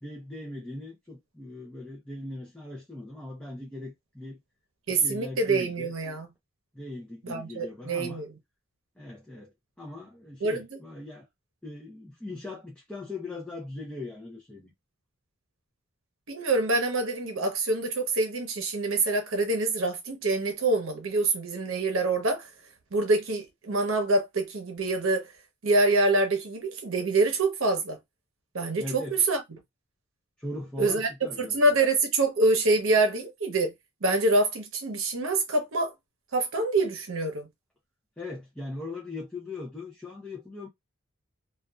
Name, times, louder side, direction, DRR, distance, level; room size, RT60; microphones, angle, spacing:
voice 1, 0.0-4.4 4.9-5.9 6.7-8.2 9.0-11.3 11.6-14.7 28.8-29.3 30.4-31.7 38.2-40.7, left 2 dB, 5° left, 0.6 m, -40 dB
voice 2, 4.9-6.3 7.2-8.3 10.4-10.6 16.3-22.5 22.9-25.3 25.6-28.0 28.5-29.4 30.8-31.1 31.4-33.7 34.0-35.9 36.3-37.5, right 2 dB, 65° right, 0.8 m, -25 dB
2.6 x 2.4 x 2.3 m
head